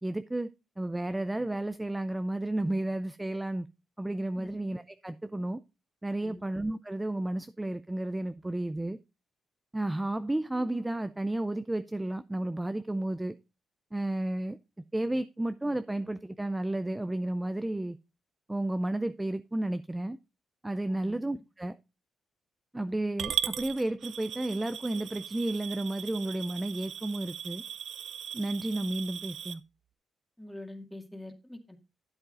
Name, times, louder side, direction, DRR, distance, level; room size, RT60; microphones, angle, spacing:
voice 1, 0.0-0.5 0.8-3.7 4.0-5.6 6.0-9.0 9.7-13.4 13.9-14.6 14.9-18.0 18.5-20.2 20.6-21.7 22.7-27.6 28.3-29.6, right 1 dB, 10° right, 0.4 m, -32 dB
Coin (dropping) / Glass, 23.2-29.5, right 9 dB, 70° right, 0.6 m, -38 dB
voice 2, 30.4-31.8, left 1 dB, 5° left, 2.0 m, -45 dB
12.0 x 7.9 x 2.5 m
cardioid pair, 80°, 0 cm